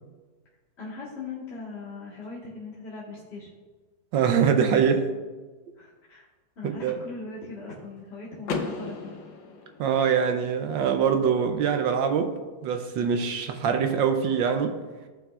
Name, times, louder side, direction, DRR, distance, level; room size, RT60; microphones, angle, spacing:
voice 1, 0.8-3.6 5.8-6.3 6.5-9.1, left 3 dB, 35° left, -7 dB, 1.7 m, -40 dB
voice 2, 4.1-5.1 6.6-6.9 9.8-12.3 12.6-14.8, right 7 dB, 75° right, 6 dB, 1.3 m, -23 dB
Car / Door, 8.4-10.4, left 4 dB, 70° left, 1.6 m, -35 dB
15.0 x 5.7 x 2.4 m, 1.3 s
omnidirectional pair, 2.1 m